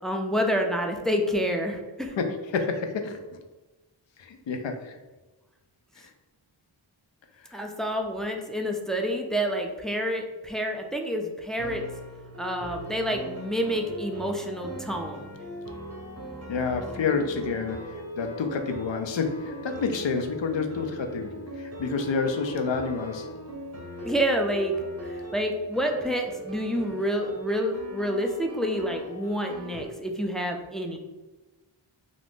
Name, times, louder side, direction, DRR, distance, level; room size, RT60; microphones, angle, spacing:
voice 1, 0.0-2.2 7.5-11.8 12.4-15.3 24.0-24.7 25.0-31.0, equal, ahead, 2 dB, 0.3 m, -28 dB
voice 2, 2.2-3.2 4.2-5.0 6.0-6.1 7.4-7.6 16.5-23.3, left 5 dB, 70° left, 6 dB, 0.5 m, -29 dB
sound 1, 11.6-29.9, right 1 dB, 35° right, 0.7 m, -39 dB
2.5 x 2.5 x 3.4 m, 1.2 s
wide cardioid pair, 40°, 47 cm